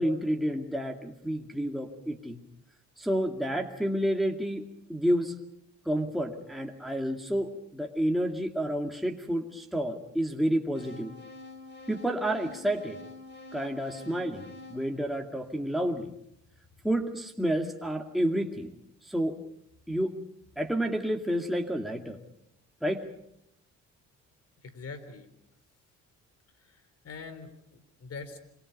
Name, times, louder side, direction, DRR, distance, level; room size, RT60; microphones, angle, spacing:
voice 1, 0.0-2.4 3.0-4.6 4.9-5.3 5.9-11.1 11.9-13.0 13.5-16.1 16.8-18.7 19.0-19.4 19.9-20.2 20.6-22.2 22.8-23.0, equal, ahead, 2 dB, 2.2 m, -30 dB
sound 1, 10.7-15.9, left 2 dB, 35° left, 6.0 m, -47 dB
voice 2, 24.6-25.3 26.6-28.4, left 4 dB, 55° left, 12 dB, 4.0 m, -44 dB
27.0 x 25.0 x 5.4 m, 0.76 s
cardioid pair, 90°, 30 cm